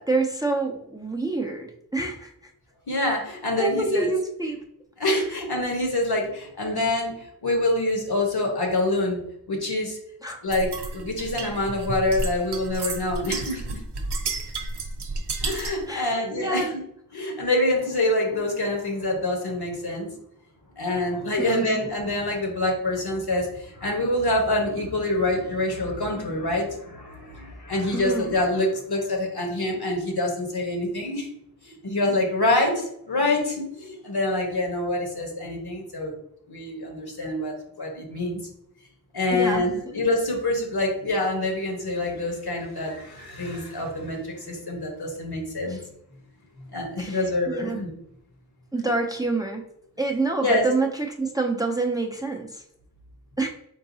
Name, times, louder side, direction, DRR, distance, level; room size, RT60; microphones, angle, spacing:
voice 1, 0.0-1.7 1.9-2.3 3.6-4.6 10.2-10.4 15.9-16.7 21.4-21.8 27.9-28.3 39.3-39.6 45.7-45.8 47.0-47.8 48.7-49.6 50.0-52.6 53.4-53.5, right 3 dB, 10° right, 2 dB, 0.5 m, -27 dB
voice 2, 2.9-4.1 5.0-10.0 10.4-13.8 15.4-16.7 17.1-20.1 20.8-31.3 31.6-36.1 36.5-38.4 39.1-45.8 46.7-47.9 50.4-50.7, left 1 dB, 75° left, 1 dB, 1.2 m, -26 dB
sound 1, 10.5-15.9, right 3 dB, 90° right, 0.6 m, -32 dB
4.6 x 3.8 x 2.7 m, 0.75 s
wide cardioid pair, 55°, 39 cm